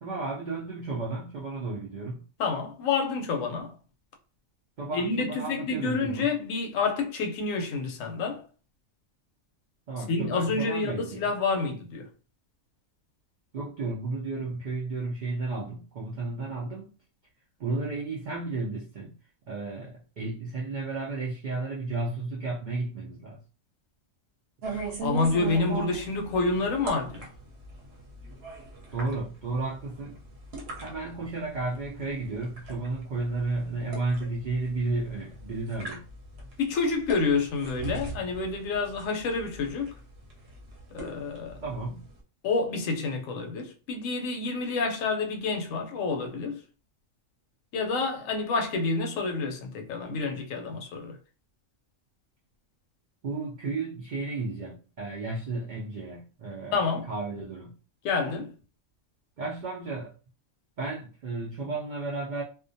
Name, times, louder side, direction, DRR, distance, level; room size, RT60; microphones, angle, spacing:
voice 1, 0.0-2.2 4.8-6.3 9.9-11.3 13.5-16.9 17.6-19.2 19.5-23.4 28.9-30.2 30.8-36.1 41.6-42.1 53.2-56.8 57.1-57.8 59.4-60.1 60.8-62.4, right 3 dB, 80° right, 0.4 m, -33 dB
voice 2, 2.4-3.7 4.9-8.4 10.1-12.1 24.7-27.3 36.6-40.0 40.9-41.6 42.4-46.6 47.7-51.2 56.7-57.1 58.0-58.5, left 4 dB, 75° left, 0.9 m, -28 dB
sound 1, 24.6-42.2, right 3 dB, 55° right, 0.8 m, -40 dB
2.4 x 2.2 x 2.5 m
omnidirectional pair, 1.4 m